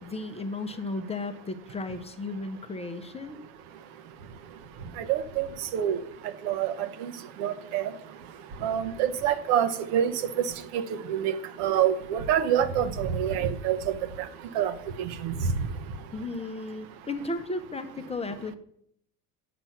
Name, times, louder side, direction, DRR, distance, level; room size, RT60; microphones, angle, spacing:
voice 1, 0.0-3.4 16.1-18.6, left 2 dB, 15° left, 8 dB, 0.6 m, -34 dB
voice 2, 5.0-5.5 5.7-6.0 6.4-7.1 7.4-7.9 8.6-10.8 11.1-11.3 11.6-13.8 14.5-14.7 15.0-15.3, right 9 dB, 70° right, 11 dB, 0.9 m, -26 dB
8.7 x 6.0 x 5.7 m, 0.72 s
supercardioid pair, 115°, 40 cm